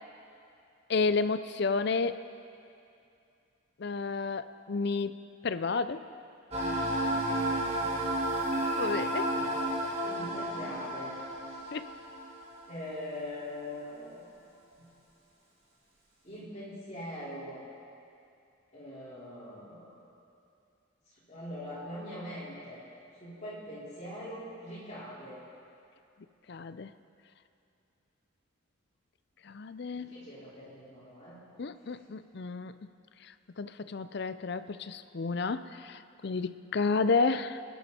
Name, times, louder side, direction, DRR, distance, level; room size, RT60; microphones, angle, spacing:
voice 1, 0.9-2.2 3.8-5.2 5.4-6.0 8.7-9.3 11.7-11.8 26.5-26.9 29.4-30.1 31.6-32.7 33.6-37.6, left 4 dB, 50° left, 12 dB, 0.5 m, -31 dB
sound 1, 6.5-12.9, right 1 dB, 30° right, 2.2 m, -32 dB
voice 2, 9.3-11.7 12.7-14.2 14.8-14.9 16.2-17.6 18.7-20.1 21.3-22.9 23.2-25.4 29.9-31.4, left 1 dB, 30° left, -9 dB, 4.8 m, -42 dB
27.0 x 10.0 x 4.4 m, 2.6 s
head